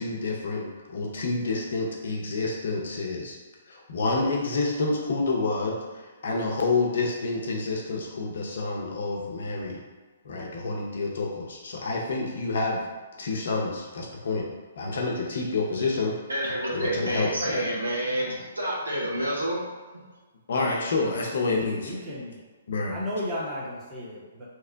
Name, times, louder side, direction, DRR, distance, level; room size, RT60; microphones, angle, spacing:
voice 1, 0.0-3.4 3.7-9.8 10.2-12.8 13.2-14.5 14.8-16.1 16.7-17.6 20.5-21.9 22.7-23.0, left 3 dB, 65° left, -1 dB, 0.8 m, -28 dB
voice 2, 16.3-19.7 19.9-20.0, right 1 dB, 85° right, -4 dB, 1.0 m, -29 dB
voice 3, 21.5-22.4 22.9-24.5, left 1 dB, 25° right, -5 dB, 1.0 m, -34 dB
3.0 x 2.1 x 3.8 m, 1.4 s
figure-of-eight pair, 130°, 0 cm